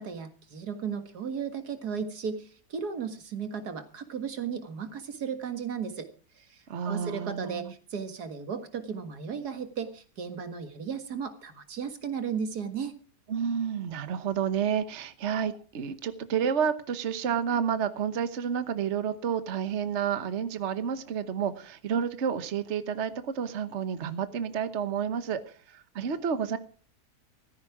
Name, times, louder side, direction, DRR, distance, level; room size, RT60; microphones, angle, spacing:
voice 1, 0.0-6.1 6.4-12.9, right 6 dB, 90° right, 8 dB, 2.3 m, -35 dB
voice 2, 6.7-7.7 13.3-26.6, right 7 dB, 50° right, 11 dB, 1.3 m, -30 dB
16.0 x 14.0 x 4.8 m, 0.40 s
omnidirectional pair, 1.6 m